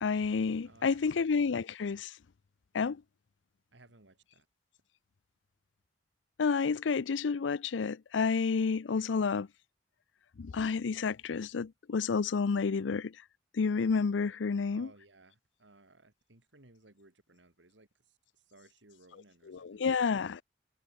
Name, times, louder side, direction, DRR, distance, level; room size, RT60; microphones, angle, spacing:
voice 1, 0.0-2.1 2.7-3.0 6.4-9.5 10.4-13.1 13.5-14.9 19.1-20.4, left 5 dB, 90° left, 0.5 m, -30 dB
voice 2, 0.6-1.6 3.7-4.5 14.7-17.9 18.5-20.1, right 2 dB, 80° right, 3.3 m, -60 dB
head